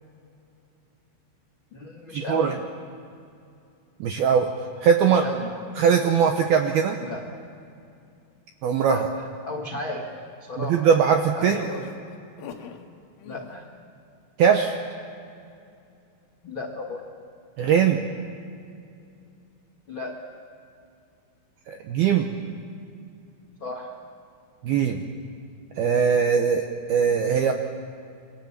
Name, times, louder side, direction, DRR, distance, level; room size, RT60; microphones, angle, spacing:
voice 1, 1.7-2.7 5.1-5.6 6.2-6.3 7.0-7.3 8.8-10.0 10.4-11.0 11.3-11.9 13.2-13.6 16.4-17.0 19.9-20.1 23.6-23.9, left 2 dB, 90° left, 1 dB, 1.1 m, -34 dB
voice 2, 4.0-4.5 4.8-5.2 5.8-7.0 8.6-9.1 10.6-11.6 14.4-14.7 17.6-18.0 21.7-22.3 24.6-25.0 25.8-27.5, right 7 dB, 80° right, 4 dB, 2.2 m, -20 dB
sound 1, 11.5-12.8 13.2-13.6, left 8 dB, 75° left, 3.8 m, -39 dB
28.0 x 24.0 x 7.4 m, 2.5 s
omnidirectional pair, 5.9 m